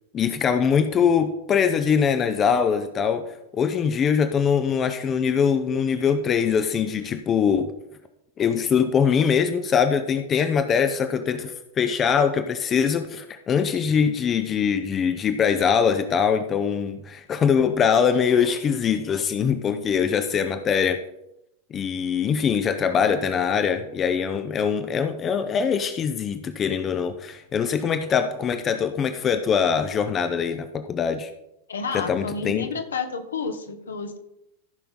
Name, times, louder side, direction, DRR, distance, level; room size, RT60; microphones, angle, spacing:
voice 1, 0.1-7.7 8.4-21.0 21.7-31.3 31.9-32.7, left 7 dB, 25° left, 10 dB, 0.6 m, -22 dB
voice 2, 31.7-34.2, left 5 dB, 70° left, 7 dB, 1.2 m, -30 dB
15.0 x 5.7 x 3.8 m, 0.85 s
figure-of-eight pair, 90°, 0 cm